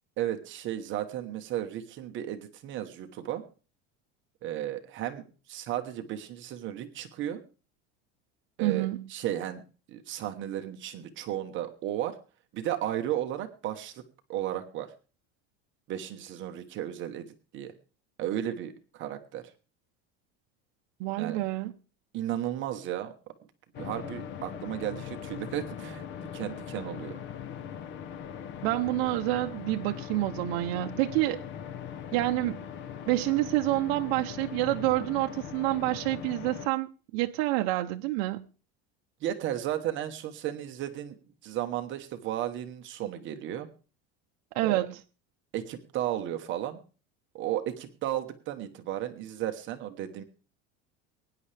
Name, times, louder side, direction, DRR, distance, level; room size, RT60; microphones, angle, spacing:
voice 1, 0.2-3.4 4.4-7.4 8.6-9.6 9.9-12.2 12.5-14.0 14.3-14.9 15.9-17.7 18.2-19.5 21.2-21.4 22.1-23.1 23.8-27.2 39.2-41.1 41.4-43.7 44.6-44.8 45.5-46.8 47.3-50.2, right 12 dB, 40° right, 1.1 m, -34 dB
voice 2, 8.6-9.1 21.0-21.7 28.6-31.4 32.1-32.6 33.1-38.4 44.5-45.0, right 17 dB, 65° right, 0.8 m, -28 dB
sound 1, 23.7-36.7, left 9 dB, 35° left, 0.8 m, -40 dB
23.0 x 10.0 x 3.4 m
cardioid pair, 160°, 31 cm